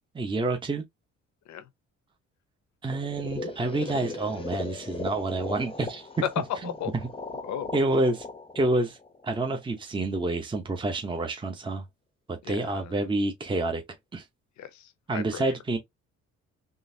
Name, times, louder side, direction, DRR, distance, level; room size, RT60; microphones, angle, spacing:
voice 1, 0.1-0.8 2.8-6.0 7.7-8.3 8.5-9.0 9.2-11.8 12.3-13.8 14.1-14.2 15.1-15.8, right 2 dB, 15° right, 0.7 m, -28 dB
sound 1, 2.9-9.8, left 3 dB, 20° left, 0.7 m, -39 dB
voice 2, 6.2-6.9 7.4-7.7 12.4-13.1 14.6-15.5, left 9 dB, 65° left, 0.7 m, -34 dB
3.8 x 2.5 x 2.7 m
cardioid pair, 90°, 30 cm